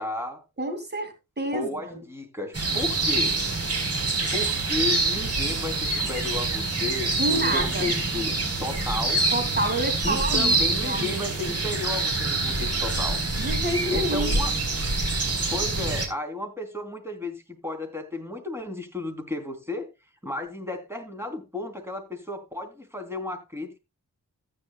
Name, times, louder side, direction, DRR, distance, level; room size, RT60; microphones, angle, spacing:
voice 1, 0.0-0.4 1.5-3.4 4.3-9.3 10.0-13.2 13.9-14.5 15.5-19.9 20.2-23.8, left 2 dB, 5° right, 3.5 m, -33 dB
voice 2, 0.6-2.0 7.2-7.9 9.3-10.5 10.8-11.5 13.4-14.4, right 1 dB, 30° right, 2.7 m, -28 dB
sound 1, 2.5-16.1, right 3 dB, 45° right, 4.3 m, -26 dB
14.5 x 9.5 x 2.3 m
wide cardioid pair, 80°, 33 cm